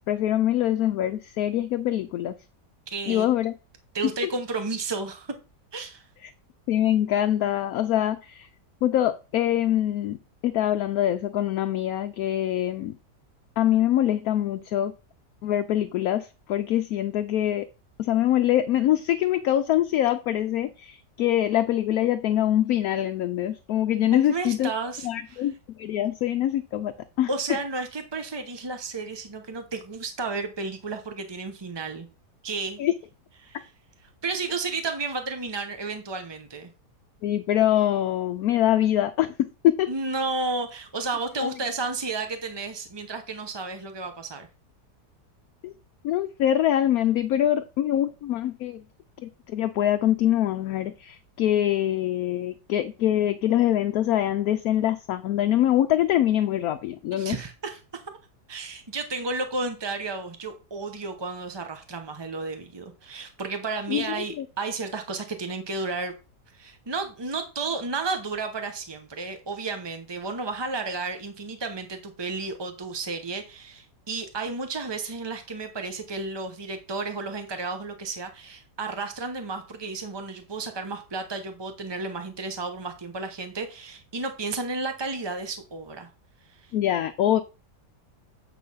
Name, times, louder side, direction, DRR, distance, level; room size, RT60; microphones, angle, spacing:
voice 1, 0.1-2.3 3.1-3.5 4.2-4.3 6.2-6.3 6.7-8.5 8.8-10.2 10.4-12.9 13.6-14.9 15.4-17.7 18.0-24.7 25.0-26.9 27.2-27.3 32.8-32.9 37.2-39.3 39.6-39.9 41.4-41.5 45.6-45.7 46.0-48.8 49.2-57.3 63.9-64.4 86.7-87.4, left 12 dB, 70° left, 1.0 m, -24 dB
voice 2, 2.9-3.3 3.9-5.3 5.7-6.1 24.0-25.5 27.3-32.1 32.4-32.9 33.4-33.7 34.2-36.7 39.9-44.5 57.1-58.0 58.5-66.1 66.5-86.1 86.5-86.7, right 3 dB, 35° right, 0.4 m, -32 dB
8.5 x 3.9 x 5.5 m
omnidirectional pair, 1.8 m